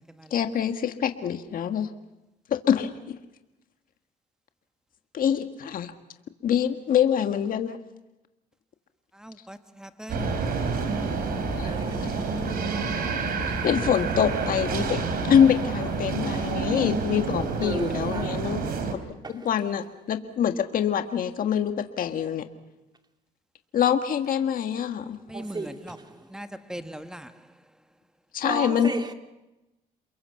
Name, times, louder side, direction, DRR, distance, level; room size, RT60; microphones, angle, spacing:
voice 1, 0.3-1.9 2.5-3.1 5.1-5.9 6.4-7.8 11.6-11.7 13.6-18.6 18.9-19.0 19.3-22.4 23.7-25.2 28.3-28.9, left 9 dB, 60° left, 1.7 m, -25 dB
voice 2, 9.1-11.1 25.3-27.4, equal, 5° right, 1.5 m, -41 dB
sound 1, 10.1-18.9, right 5 dB, 65° right, 3.8 m, -29 dB
sound 2, 10.2-16.5, left 3 dB, 25° left, 5.1 m, -40 dB
voice 3, 11.6-12.2 16.3-16.5 17.6-18.6 19.2-19.3 25.3-26.0 26.8-26.9 28.4-29.1, right 3 dB, 25° right, 2.6 m, -35 dB
28.5 x 22.5 x 5.9 m
cardioid pair, 90°, 16 cm